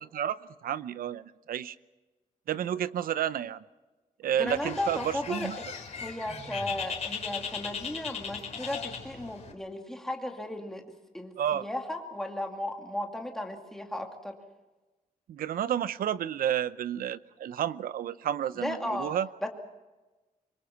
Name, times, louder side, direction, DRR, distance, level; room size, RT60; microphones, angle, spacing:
voice 1, 0.0-1.8 2.5-3.6 4.2-5.6 11.4-11.7 15.3-19.3, right 10 dB, 85° right, 15 dB, 0.8 m, -31 dB
voice 2, 4.4-5.5 6.0-10.8 11.1-14.4 18.6-19.1 19.4-19.5, left 1 dB, 5° left, 2 dB, 2.5 m, -35 dB
Bird, 4.5-9.5, left 6 dB, 50° left, 3.7 m, -38 dB
sound 1, 6.3-7.1, equal, 15° right, 6.0 m, -46 dB
25.5 x 23.0 x 5.9 m, 1.2 s
wide cardioid pair, 165°, 15 cm